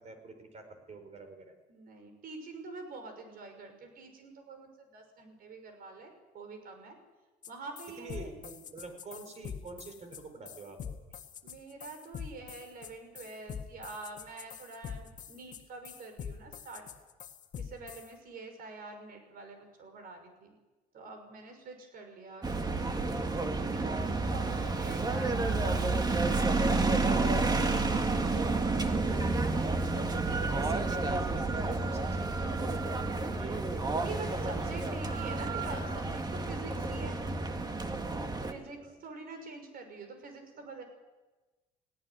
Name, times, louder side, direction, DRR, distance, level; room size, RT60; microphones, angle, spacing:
voice 1, 0.0-1.5 8.0-11.0 30.2-35.0 38.7-38.9, right 3 dB, 40° right, 7 dB, 4.8 m, -47 dB
voice 2, 1.7-7.0 7.5-8.3 11.4-16.8 17.6-20.6 20.9-23.2 23.6-27.3 27.6-29.1 29.4-30.6 34.0-37.2 38.5-40.8, right 3 dB, 60° right, 6 dB, 6.0 m, -46 dB
sound 1, 7.4-7.5 7.8-18.1, left 8 dB, 50° left, 1.7 m, -44 dB
sound 2, 22.4-38.5, right 3 dB, 25° right, 1.9 m, -30 dB
sound 3, 24.0-37.6, left 1 dB, ahead, 0.7 m, -42 dB
18.5 x 17.5 x 9.5 m, 1.2 s
cardioid pair, 110°, 17 cm